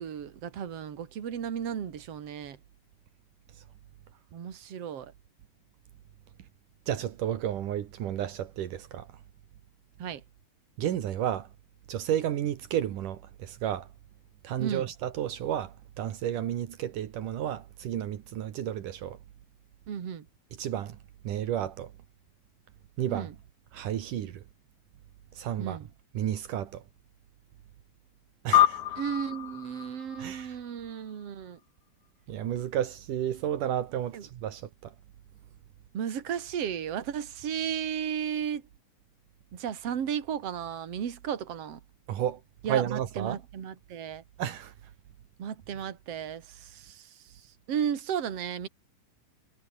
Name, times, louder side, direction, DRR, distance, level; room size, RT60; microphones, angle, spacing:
voice 1, 0.0-2.6 4.3-5.1 10.0-10.2 14.6-14.9 19.9-20.3 23.1-23.3 25.6-25.9 29.0-31.6 34.1-34.2 35.9-38.6 39.5-41.8 42.6-44.2 45.4-47.1 47.7-48.7, right 8 dB, 50° right, 3.1 m, -34 dB
voice 2, 6.9-9.1 10.8-11.5 11.9-13.9 14.4-19.2 20.6-21.0 21.2-21.9 23.0-23.3 23.7-24.4 25.3-25.8 26.1-26.8 28.4-28.8 30.2-30.6 32.3-34.9 42.1-42.4 42.7-43.4 44.4-44.7, right 11 dB, 75° right, 3.0 m, -32 dB
sound 1, 28.5-31.3, left 12 dB, 65° left, 2.6 m, -27 dB
omnidirectional pair, 3.8 m